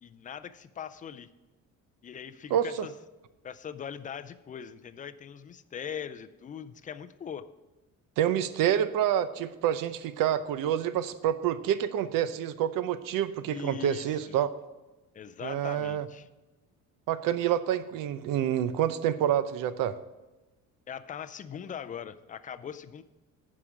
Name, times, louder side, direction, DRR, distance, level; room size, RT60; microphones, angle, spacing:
voice 1, 0.0-1.3 2.0-2.9 3.4-7.5 13.5-14.3 15.1-16.3 20.9-23.0, left 8 dB, 25° left, 11 dB, 0.4 m, -41 dB
voice 2, 2.5-2.9 8.2-14.5 15.4-16.1 17.1-20.0, right 10 dB, 80° right, 13 dB, 0.7 m, -28 dB
11.0 x 5.0 x 7.2 m, 1.1 s
cardioid pair, 165°, 33 cm